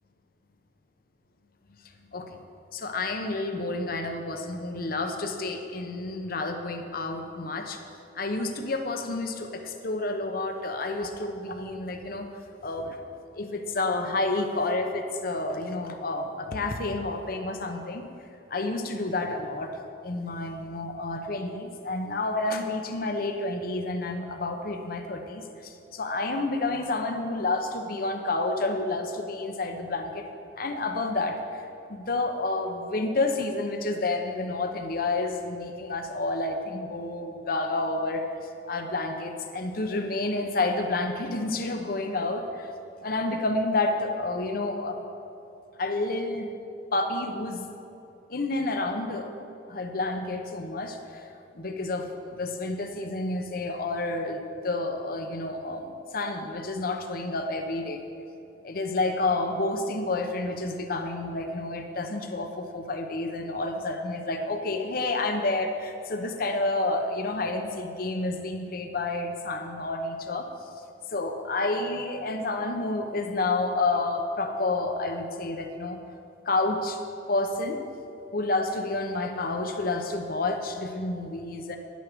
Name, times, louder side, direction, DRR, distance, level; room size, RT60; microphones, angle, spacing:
voice 1, 2.7-7.8 8.1-12.4 12.6-13.0 13.4-18.0 18.5-19.7 20.0-30.3 30.6-31.6 31.9-38.3 38.7-42.7 43.0-45.0 45.8-46.5 46.9-47.7 48.3-49.3 49.7-51.2 51.5-54.4 54.6-58.0 58.6-70.5 71.1-76.0 76.4-77.0 77.3-77.8 78.3-81.8, left 2 dB, 55° left, 5 dB, 0.9 m, -29 dB
10.5 x 8.3 x 6.1 m, 2.7 s
head